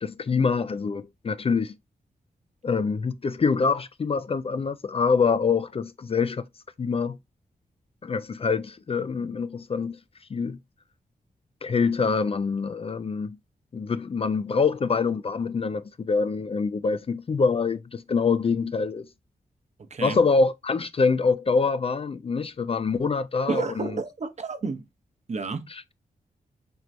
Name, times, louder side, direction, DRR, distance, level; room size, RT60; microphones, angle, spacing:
voice 1, 0.0-1.7 2.6-6.5 6.8-7.2 8.0-10.0 10.3-10.6 11.6-13.4 13.7-19.1 20.0-24.0 25.7-25.9, left 4 dB, 40° left, 0.4 m, -25 dB
voice 2, 23.5-24.8 25.3-25.7, right 4 dB, 45° right, 0.8 m, -30 dB
4.6 x 3.0 x 2.5 m
cardioid pair, 55°, 16 cm